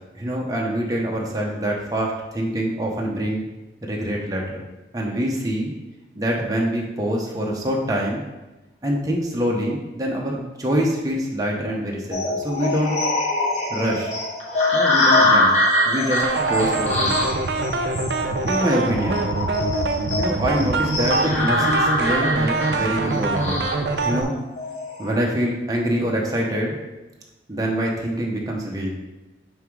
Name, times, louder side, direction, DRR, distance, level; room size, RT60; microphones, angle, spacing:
voice 1, 0.1-3.5 3.8-4.7 4.9-5.7 6.1-8.2 8.8-13.0 13.7-14.1 14.7-15.5 15.8-17.2 18.4-19.3 20.2-23.7 24.0-24.3 25.0-26.8 27.5-28.9, equal, 20° right, -2 dB, 0.8 m, -25 dB
sound 1, 12.1-25.1, left 1 dB, 40° left, 1.2 m, -23 dB
sound 2, 16.2-24.2, right 3 dB, 70° right, 0.5 m, -24 dB
5.7 x 3.5 x 4.7 m, 1.1 s
head